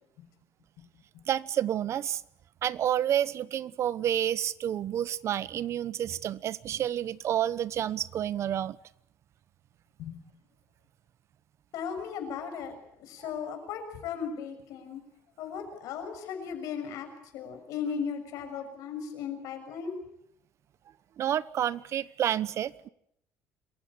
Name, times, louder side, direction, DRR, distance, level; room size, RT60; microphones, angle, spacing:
voice 1, 1.3-2.2 2.6-8.8 21.2-22.9, right 10 dB, 55° right, 18 dB, 1.0 m, -29 dB
voice 2, 11.7-15.0 15.4-17.1 17.3-20.0, left 7 dB, 80° left, 6 dB, 6.5 m, -36 dB
27.0 x 16.0 x 9.8 m, 0.73 s
cardioid pair, 115°, 6 cm